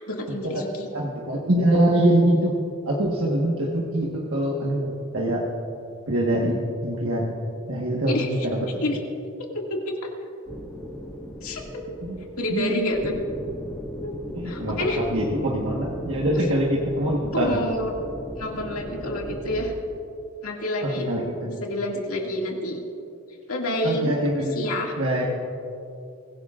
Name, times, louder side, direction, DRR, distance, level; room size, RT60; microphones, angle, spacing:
voice 1, 0.1-0.9 8.1-8.5 8.8-9.0 9.5-10.0 11.4-11.8 12.4-13.1 14.0-15.0 16.4-16.5 17.3-17.9 18.4-19.7 20.4-21.1 21.4-22.8 23.5-24.1 24.5-24.9, left 1 dB, 90° left, 0 dB, 2.3 m, -28 dB
voice 2, 0.9-2.5 2.8-5.4 6.1-7.4 7.7-8.7 12.0-12.2 12.5-12.8 14.3-17.6 20.8-21.3 23.8-24.5 25.0-25.4, right 1 dB, 65° right, -3 dB, 1.5 m, -24 dB
sound 1, 10.5-19.7, equal, 10° left, 1.8 m, -37 dB
23.5 x 16.0 x 2.5 m, 2.7 s
head